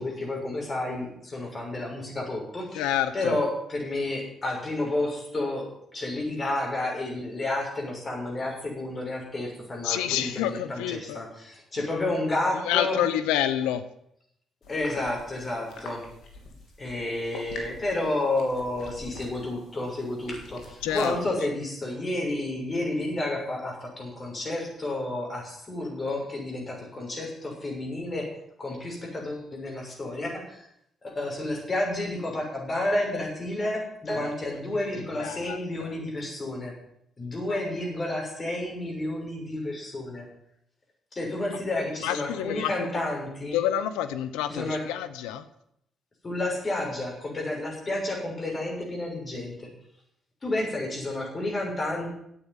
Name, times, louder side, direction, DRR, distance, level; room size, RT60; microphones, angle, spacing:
voice 1, 0.0-5.7 5.9-13.0 14.7-16.0 16.8-28.3 28.6-30.7 31.0-36.7 37.2-40.2 41.1-43.6 44.5-44.8 46.2-49.5 50.4-52.1, left 2 dB, 35° left, 0 dB, 6.4 m, -30 dB
voice 2, 2.7-3.4 9.8-11.2 12.7-13.8 20.8-21.1 35.2-35.9 37.5-37.6 42.0-42.7 43.5-45.4, left 11 dB, 90° left, 12 dB, 0.7 m, -28 dB
sound 1, 14.6-21.2, left 2 dB, 70° left, 3.1 m, -45 dB
10.0 x 8.6 x 9.7 m, 0.74 s
supercardioid pair, 55°, 0 cm